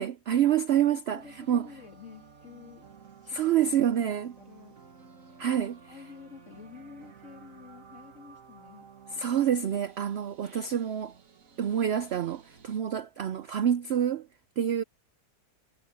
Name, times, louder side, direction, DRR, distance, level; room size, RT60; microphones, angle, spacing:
voice 1, 0.0-1.7 3.3-4.3 5.4-6.0 9.1-11.1 11.6-14.3 14.6-14.8, right 9 dB, 75° right, 0.6 m, -27 dB
voice 2, 0.9-2.9 3.2-3.5 4.0-4.8 5.9-8.9, left 6 dB, 50° left, 2.5 m, -49 dB
sound 1, 1.2-12.8, right 6 dB, 55° right, 1.8 m, -54 dB
omnidirectional pair, 1.7 m